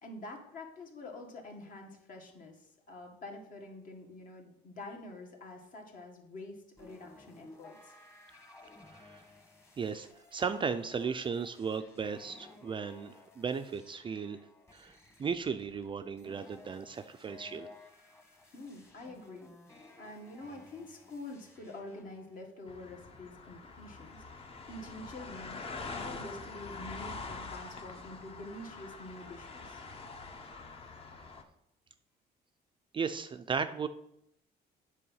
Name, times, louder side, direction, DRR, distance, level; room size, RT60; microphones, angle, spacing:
voice 1, 0.0-2.6 2.9-7.9 18.5-19.5 20.0-25.6 25.9-29.8, left 2 dB, 50° left, 2 dB, 1.9 m, -47 dB
sound 1, 6.8-22.5, left 3 dB, 15° left, 1.3 m, -57 dB
voice 2, 9.8-14.4 14.7-17.7 32.9-33.9, right 6 dB, 30° right, 9 dB, 0.4 m, -36 dB
sound 2, 22.7-31.4, left 3 dB, 35° left, 1.0 m, -45 dB
8.5 x 4.9 x 5.5 m, 0.80 s
cardioid pair, 110°, 17 cm